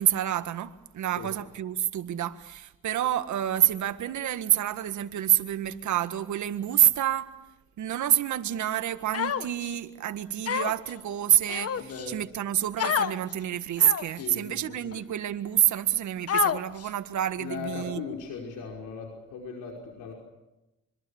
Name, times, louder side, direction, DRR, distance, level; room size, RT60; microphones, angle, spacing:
voice 1, 0.0-7.3 7.8-18.0, right 11 dB, 70° right, 1.8 m, -27 dB
Human voice, 9.1-9.7 10.5-10.9 11.5-12.1 12.8-13.1 13.8-14.2 14.9-15.0 16.3-16.9, left 8 dB, 50° left, 1.5 m, -28 dB
voice 2, 11.7-12.2 14.0-14.9 17.4-20.1, left 6 dB, 85° left, 5.5 m, -38 dB
25.5 x 25.5 x 7.2 m
cardioid pair, 90°, 30 cm